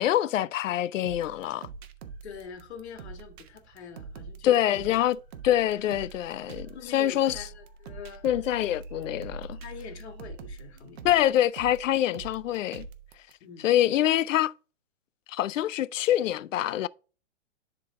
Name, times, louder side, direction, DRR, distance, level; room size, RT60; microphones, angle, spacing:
voice 1, 0.0-1.7 4.4-5.2 5.4-7.4 8.2-9.6 11.0-12.9 13.6-14.5 15.3-16.9, left 12 dB, 90° left, 0.5 m, -25 dB
sound 1, 1.0-13.3, right 5 dB, 55° right, 0.9 m, -45 dB
sound 2, 2.0-11.5, right 2 dB, 40° right, 2.8 m, -49 dB
voice 2, 2.2-5.0 6.3-6.4 6.7-8.3 9.6-11.4 13.4-13.7, left 6 dB, 60° left, 1.8 m, -45 dB
10.5 x 3.8 x 3.7 m
hypercardioid pair, 155°, 37 cm